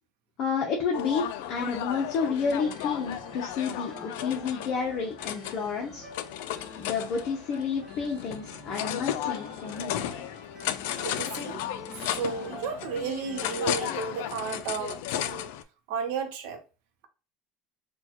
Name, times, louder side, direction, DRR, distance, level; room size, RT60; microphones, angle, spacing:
voice 1, 0.4-6.1 6.8-10.1, left 5 dB, 45° left, 0.7 m, -30 dB
sound 1, 0.9-15.6, left 11 dB, 85° left, 0.3 m, -34 dB
sound 2, 2.4-14.0, equal, 20° right, 0.8 m, -48 dB
voice 2, 11.0-11.6 11.9-15.5 15.9-16.6, right 6 dB, 75° right, 0.7 m, -33 dB
4.3 x 2.3 x 2.9 m
cardioid pair, 165°, 0 cm